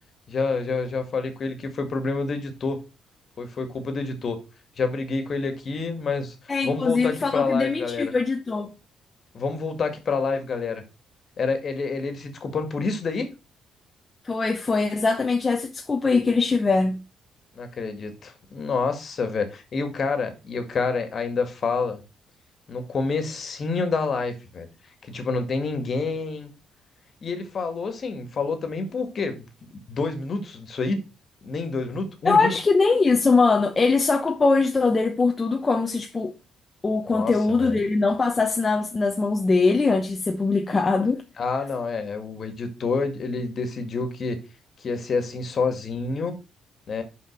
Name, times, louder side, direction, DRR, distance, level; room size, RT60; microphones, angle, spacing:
voice 1, 0.3-2.8 3.4-4.4 4.8-6.3 6.6-8.1 9.3-10.8 11.4-13.3 17.6-22.0 22.7-24.7 25.0-26.5 27.2-29.5 29.9-31.0 31.4-32.5 37.1-37.8 41.4-44.4 44.8-46.4 46.9-47.0, left 4 dB, 50° left, 1.9 m, -28 dB
voice 2, 6.5-8.7 14.2-17.0 32.2-36.3 36.8-41.2, left 4 dB, 30° left, 0.8 m, -22 dB
5.7 x 5.3 x 6.0 m
cardioid pair, 90°, 0 cm